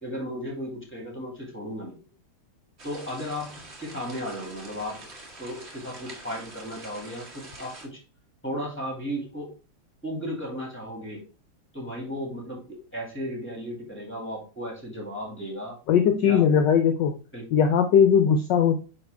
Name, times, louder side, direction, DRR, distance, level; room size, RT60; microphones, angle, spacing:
voice 1, 0.0-2.0 2.8-5.0 5.4-8.0 8.4-9.5 10.0-11.2 11.7-15.8 16.2-16.4 17.3-17.4, equal, 5° left, -1 dB, 2.2 m, -35 dB
sound 1, 2.8-7.9, right 2 dB, 35° right, 1.6 m, -45 dB
voice 2, 15.9-17.1 17.5-18.8, left 7 dB, 65° left, 6 dB, 1.2 m, -19 dB
9.2 x 3.6 x 3.5 m, 0.34 s
omnidirectional pair, 2.3 m